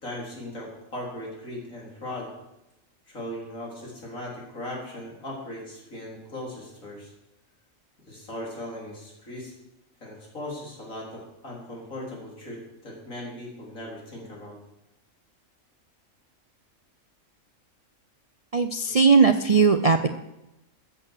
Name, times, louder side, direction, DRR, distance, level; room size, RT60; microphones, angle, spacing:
voice 1, 0.0-2.3 3.1-7.1 8.1-9.5 10.0-14.6, left 1 dB, 85° left, -3 dB, 4.4 m, -38 dB
voice 2, 18.5-20.1, right 5 dB, 50° right, 8 dB, 0.4 m, -18 dB
14.0 x 7.8 x 6.6 m, 0.91 s
omnidirectional pair, 1.4 m